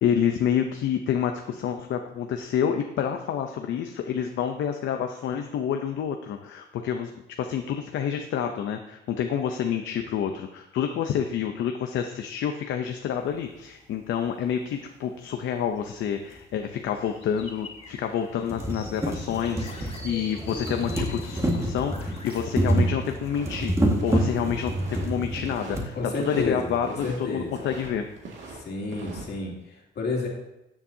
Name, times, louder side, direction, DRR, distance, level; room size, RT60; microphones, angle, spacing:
voice 1, 0.0-7.1 7.4-26.0 26.2-28.1, left 8 dB, 75° left, 5 dB, 0.7 m, -28 dB
sound 1, 16.3-16.4 17.4-17.5 17.9-18.0 18.3-25.9 26.8-26.9 27.1-27.2, right 1 dB, 15° right, 1.7 m, -28 dB
sound 2, 16.9-22.9, left 2 dB, 30° left, 2.5 m, -44 dB
sound 3, 23.2-23.6 23.9-25.1 25.4-26.5 26.7-27.9 28.2-29.2, right 3 dB, 70° right, 2.1 m, -41 dB
voice 2, 26.0-27.7 28.5-30.3, left 3 dB, 55° left, -1 dB, 2.5 m, -31 dB
12.5 x 7.2 x 2.8 m, 0.87 s
cardioid pair, 90°, 20 cm